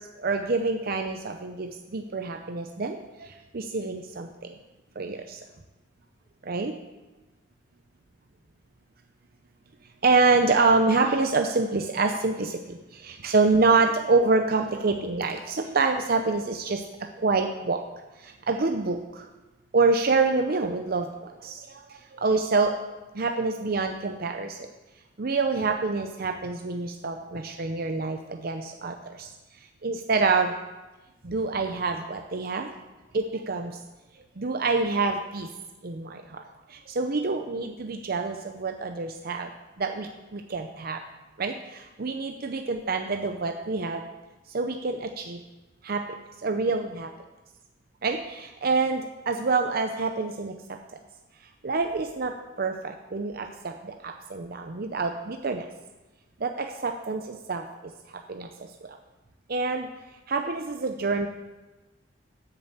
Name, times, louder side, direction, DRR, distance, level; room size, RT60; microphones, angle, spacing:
voice 1, 0.2-4.5 5.0-5.4 6.5-6.7 10.0-17.8 18.2-19.3 19.7-22.8 23.1-24.7 25.2-29.3 29.8-30.5 31.2-32.7 33.1-33.7 34.4-35.5 35.8-36.4 36.7-39.5 39.8-41.0 41.4-44.0 44.5-45.4 45.8-46.0 46.4-47.1 48.0-50.8 51.6-55.6 56.4-57.6 58.3-58.5 58.9-59.0 59.5-59.9 60.3-61.3, right 3 dB, 50° right, 5 dB, 0.7 m, -26 dB
8.2 x 6.9 x 8.0 m, 1.1 s
head